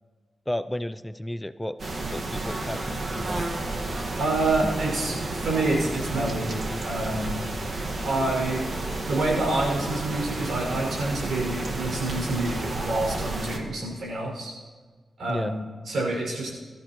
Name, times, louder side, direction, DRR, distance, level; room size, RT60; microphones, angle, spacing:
voice 1, 0.5-1.8 2.1-3.5 15.3-15.5, left 1 dB, 10° left, 13 dB, 0.4 m, -32 dB
sound 1, 1.8-13.6, right 2 dB, 50° right, 1.6 m, -31 dB
voice 2, 4.2-7.4 8.0-8.6 9.1-14.5 15.2-16.5, right 2 dB, 80° right, -2 dB, 5.7 m, -27 dB
22.0 x 13.5 x 3.1 m, 1.5 s
wide cardioid pair, 100°, 0 cm